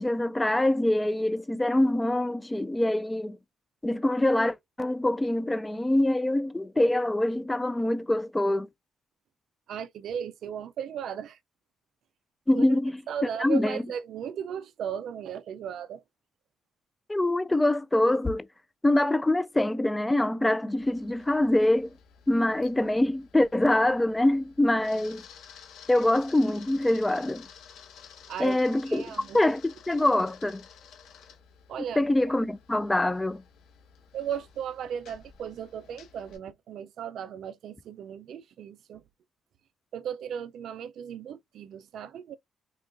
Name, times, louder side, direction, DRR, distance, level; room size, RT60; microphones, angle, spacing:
voice 1, 0.0-3.4 3.8-8.7 12.5-13.0 13.4-13.8 17.1-18.5 18.8-21.9 22.3-25.2 25.9-27.5 28.4-29.0 29.3-30.6 32.0-33.4, left 1 dB, 15° left, 0.3 m, -24 dB
voice 2, 9.7-11.4 12.5-12.6 13.1-16.0 28.3-28.6 28.9-29.4 31.7-32.0 34.1-39.0 39.9-42.3, right 8 dB, 70° right, 0.4 m, -36 dB
Camera, 20.8-36.4, left 7 dB, 85° left, 1.0 m, -53 dB
3.5 x 2.3 x 2.5 m
cardioid pair, 90°, 0 cm